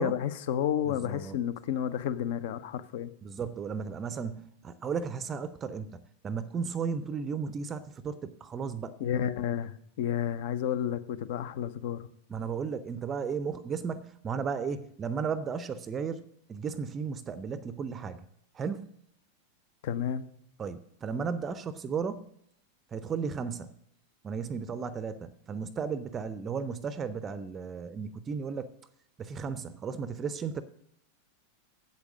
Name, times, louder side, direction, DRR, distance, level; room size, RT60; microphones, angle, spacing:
voice 1, 0.0-3.1 9.0-12.1 19.8-20.3, left 9 dB, 50° left, 0.6 m, -31 dB
voice 2, 0.9-1.4 3.2-9.0 12.3-16.2 16.5-18.2 18.5-18.9 20.6-22.3 22.9-23.7 24.2-28.7 29.2-30.6, right 6 dB, 25° right, 0.5 m, -34 dB
8.4 x 8.0 x 6.2 m
figure-of-eight pair, 90°, 0 cm